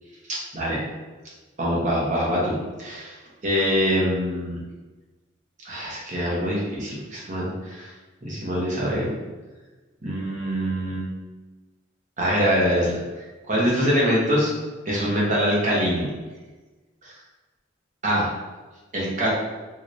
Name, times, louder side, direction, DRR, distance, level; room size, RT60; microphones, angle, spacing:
voice 1, 0.3-0.8 1.6-3.2 3.4-4.6 5.6-7.9 8.2-9.1 10.0-11.1 12.2-14.5 14.9-16.1 17.0-17.1 18.0-18.3 18.9-19.3, equal, 40° right, -5 dB, 1.0 m, -24 dB
3.0 x 3.0 x 2.6 m, 1.2 s
head